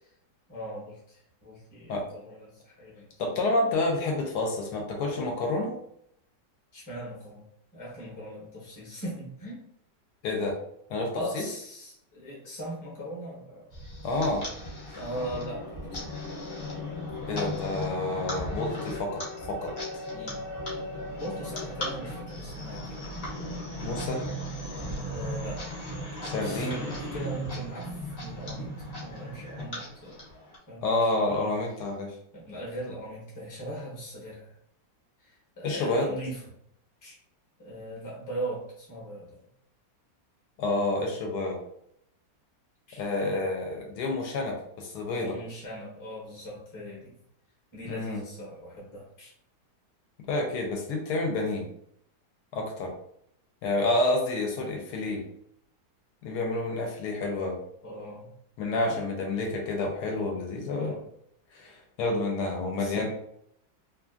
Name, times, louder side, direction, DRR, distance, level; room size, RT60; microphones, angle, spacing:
voice 1, 0.5-3.1 6.7-7.4 7.7-9.6 11.1-13.7 14.9-16.0 20.1-20.5 21.2-23.0 25.1-25.6 26.4-28.7 29.0-30.2 30.7-31.5 32.3-34.5 35.2-36.4 37.0-37.1 37.6-39.4 42.9-43.4 45.2-47.2 47.7-49.3 57.8-58.3 58.9-59.1 60.7-61.0 62.7-63.1, right 1 dB, 15° left, -6 dB, 0.7 m, -40 dB
voice 2, 3.2-5.7 10.2-10.6 10.9-11.4 14.0-14.4 17.3-19.7 23.8-24.2 26.2-26.8 30.8-32.1 35.6-36.1 40.6-41.6 43.0-45.4 47.8-48.2 50.3-51.7 52.5-52.9 53.6-55.2 56.2-57.6 58.6-60.9 61.5-63.1, left 2 dB, 75° left, 1 dB, 1.1 m, -29 dB
sound 1, 13.7-30.6, left 1 dB, 45° left, 0.9 m, -36 dB
2.8 x 2.5 x 2.4 m, 0.73 s
omnidirectional pair, 1.8 m